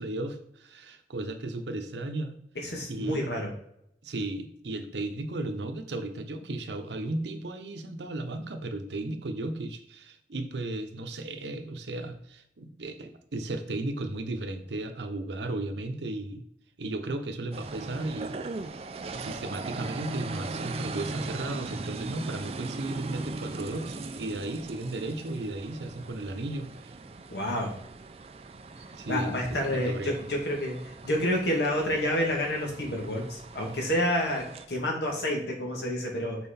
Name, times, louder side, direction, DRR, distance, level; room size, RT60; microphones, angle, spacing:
voice 1, 0.0-2.4 2.9-3.2 4.0-16.4 16.8-18.4 19.1-26.9 29.0-30.2, right 2 dB, 80° right, 6 dB, 0.8 m, -35 dB
voice 2, 2.6-3.5 27.3-27.7 29.1-30.8 31.0-36.4, left 1 dB, 70° left, 0 dB, 1.6 m, -29 dB
sound 1, 17.5-34.7, right 3 dB, 35° right, 0.4 m, -39 dB
5.7 x 4.2 x 4.2 m, 0.75 s
head